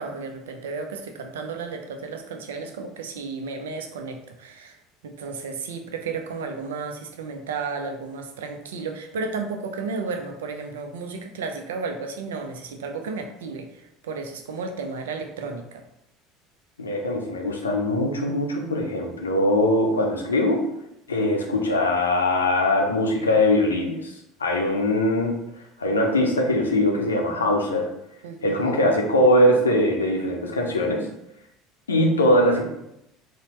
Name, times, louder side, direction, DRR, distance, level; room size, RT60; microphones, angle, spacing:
voice 1, 0.0-4.8 5.0-15.8 28.2-28.8, right 4 dB, 65° right, 5 dB, 0.4 m, -33 dB
voice 2, 16.8-20.6 21.1-24.1 24.4-25.3 25.8-27.9 28.4-31.0 31.9-32.6, left 1 dB, 75° left, 1 dB, 0.5 m, -21 dB
4.0 x 2.1 x 2.9 m, 0.82 s
figure-of-eight pair, 65°, 0 cm